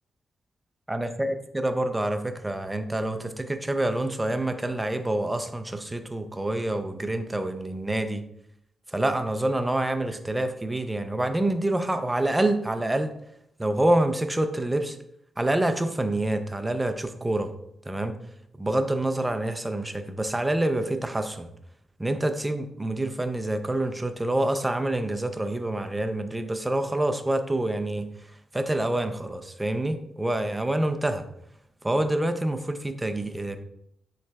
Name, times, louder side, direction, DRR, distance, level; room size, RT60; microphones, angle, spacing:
voice 1, 0.9-8.2 8.9-13.1 13.6-15.0 15.4-17.5 17.9-18.2 18.6-21.5 22.0-31.3 31.8-33.6, right 1 dB, 15° right, 8 dB, 0.4 m, -27 dB
7.2 x 3.2 x 2.2 m, 0.75 s
cardioid pair, 100°, 0 cm